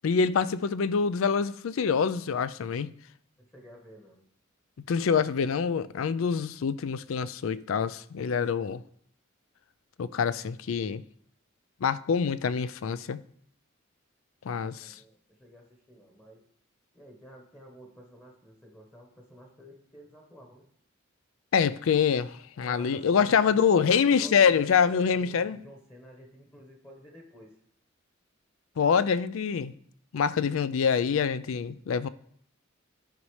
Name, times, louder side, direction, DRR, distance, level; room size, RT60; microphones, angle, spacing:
voice 1, 0.0-2.9 4.9-8.8 10.0-11.0 11.8-13.2 14.4-14.9 21.5-25.6 28.8-29.7 30.1-32.1, left 6 dB, 75° left, 0.4 m, -25 dB
voice 2, 3.4-4.2 14.7-16.4 16.9-20.7 22.6-27.5, equal, 15° left, 1.2 m, -50 dB
12.5 x 5.3 x 3.2 m
head